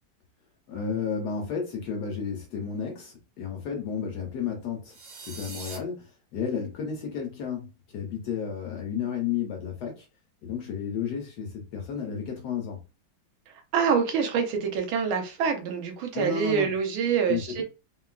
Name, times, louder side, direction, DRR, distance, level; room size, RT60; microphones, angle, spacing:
voice 1, 0.7-5.0 5.3-10.1 10.4-12.8 16.1-16.7 17.3-17.6, left 7 dB, 70° left, 1.0 m, -32 dB
sound 1, 4.9-5.8, right 3 dB, 70° right, 1.6 m, -41 dB
voice 2, 13.7-17.6, right 6 dB, 85° right, 1.6 m, -26 dB
3.7 x 2.2 x 2.3 m
omnidirectional pair, 2.2 m